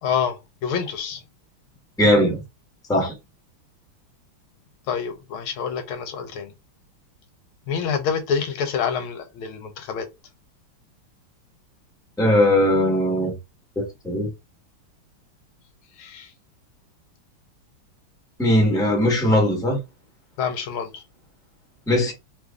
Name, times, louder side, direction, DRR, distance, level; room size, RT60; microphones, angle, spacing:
voice 1, 0.0-1.2 4.9-6.5 7.7-10.1 16.0-16.3 20.4-21.0, left 7 dB, 80° left, 1.5 m, -27 dB
voice 2, 2.0-2.4 2.9-3.1 12.2-13.3 13.7-14.3 18.4-19.8 21.9-22.1, left 1 dB, ahead, 0.9 m, -19 dB
3.3 x 2.5 x 3.5 m
omnidirectional pair, 2.3 m